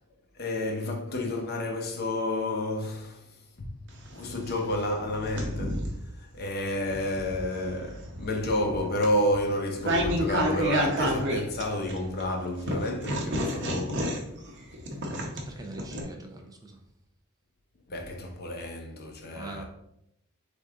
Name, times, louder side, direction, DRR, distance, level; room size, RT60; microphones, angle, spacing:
voice 1, 0.4-3.2 3.6-3.7 4.1-14.2 17.9-19.6, left 1 dB, 45° left, 0.7 m, -30 dB
sound 1, 3.9-6.1 6.7-12.2 12.7-16.0, equal, 55° right, 0.8 m, -30 dB
voice 2, 15.3-16.8 19.3-19.6, right 2 dB, 15° right, 0.4 m, -43 dB
3.9 x 3.5 x 3.6 m
head